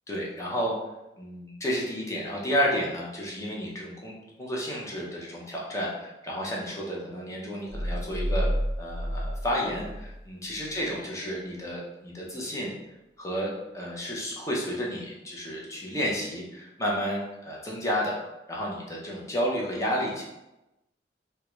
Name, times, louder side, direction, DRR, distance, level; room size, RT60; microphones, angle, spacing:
voice 1, 0.1-0.8 1.2-8.5 8.8-12.7 13.2-18.2 18.5-20.2, equal, 15° left, -4 dB, 0.7 m, -31 dB
sound 1, 7.7-10.2 10.6-10.7, equal, 50° right, 0.6 m, -30 dB
3.6 x 2.2 x 3.0 m, 0.96 s
head